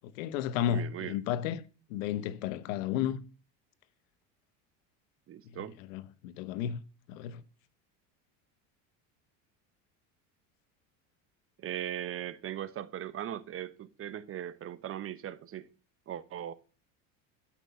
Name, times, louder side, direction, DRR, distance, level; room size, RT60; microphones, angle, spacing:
voice 1, 0.1-1.6 1.9-3.2 5.8-6.8 7.1-7.4, left 10 dB, 80° left, 1.1 m, -32 dB
voice 2, 0.7-1.2 5.3-5.8 11.6-15.7 16.1-16.5, right 11 dB, 35° right, 1.0 m, -39 dB
12.5 x 6.1 x 7.0 m
supercardioid pair, 125°, 39 cm